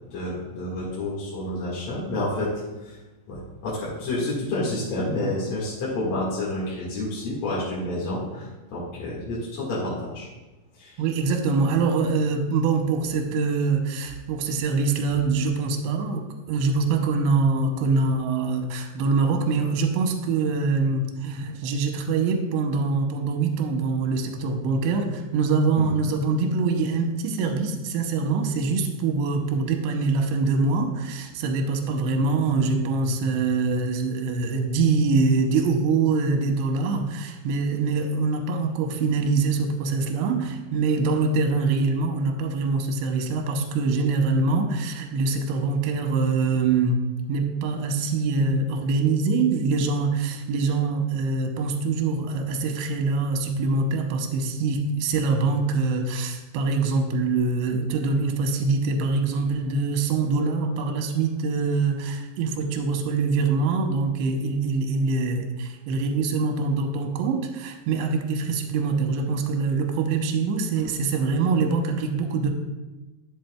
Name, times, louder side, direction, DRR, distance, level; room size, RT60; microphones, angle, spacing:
voice 1, 0.1-2.5 2.8-3.0 3.3-10.3 10.8-11.0 25.8-25.9 70.8-70.9, left 1 dB, 50° left, -8 dB, 2.2 m, -29 dB
voice 2, 11.0-47.0 47.3-72.5, right 4 dB, 80° right, 4 dB, 2.9 m, -24 dB
11.0 x 7.3 x 2.3 m, 1.1 s
omnidirectional pair, 5.1 m